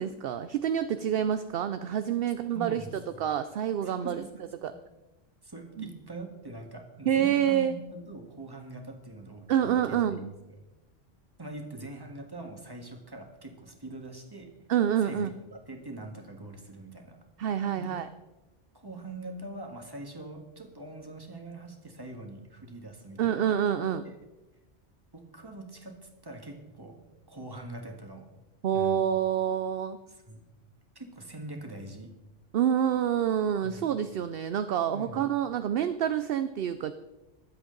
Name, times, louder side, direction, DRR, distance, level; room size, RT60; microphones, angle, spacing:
voice 1, 0.0-2.8 3.2-4.2 4.6-4.7 5.8-5.9 7.1-7.7 9.5-10.3 14.7-15.3 17.4-18.1 23.2-24.1 28.6-30.0 32.5-36.9, right 9 dB, 60° right, 11 dB, 0.7 m, -27 dB
voice 2, 2.5-2.9 3.8-4.8 5.4-10.6 11.4-14.5 15.0-15.2 15.5-17.2 17.8-18.0 18.7-23.5 24.0-24.2 25.1-27.0 27.3-28.3 28.7-29.1 30.1-30.4 30.9-32.1 33.6-33.8 34.9-35.3, right 2 dB, 20° right, 3 dB, 1.7 m, -43 dB
22.0 x 7.8 x 3.9 m, 1.0 s
omnidirectional pair, 1.2 m